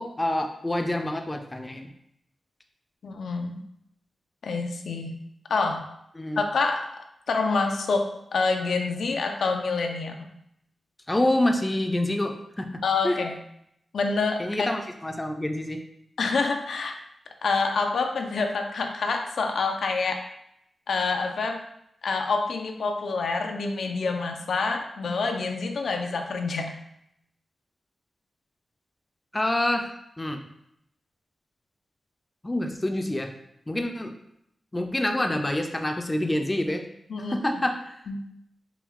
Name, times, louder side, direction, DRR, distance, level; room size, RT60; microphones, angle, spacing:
voice 1, 0.0-1.9 6.2-6.4 11.1-13.2 14.4-15.8 29.3-30.4 32.4-33.3 33.7-34.1 34.7-36.8 37.3-38.0, left 1 dB, 20° left, 5 dB, 0.4 m, -27 dB
voice 2, 3.0-3.6 4.4-5.2 5.5-5.9 6.4-10.3 12.8-13.3 13.9-14.7 16.2-17.0 17.4-20.3 20.9-21.6 22.0-26.7 37.1-37.4 38.1-38.3, left 4 dB, 80° left, 4 dB, 0.4 m, -27 dB
4.5 x 2.2 x 3.6 m, 0.77 s
wide cardioid pair, 90°, 0 cm